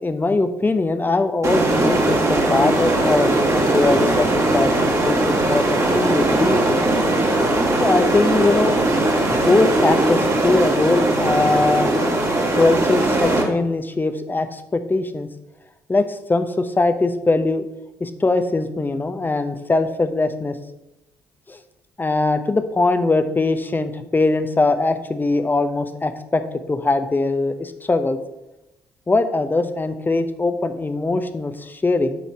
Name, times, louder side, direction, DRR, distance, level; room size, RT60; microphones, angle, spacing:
voice 1, 0.0-5.2 5.5-6.8 7.8-8.7 9.5-11.9 12.5-15.3 15.9-17.6 18.0-20.6 21.5-21.6 22.0-26.4 26.7-28.2 29.1-32.2, left 3 dB, 20° left, 9 dB, 0.9 m, -21 dB
sound 1, 1.4-13.4, right 2 dB, 35° right, 2.2 m, -19 dB
7.5 x 4.1 x 5.8 m, 0.91 s
hypercardioid pair, 45°, 9 cm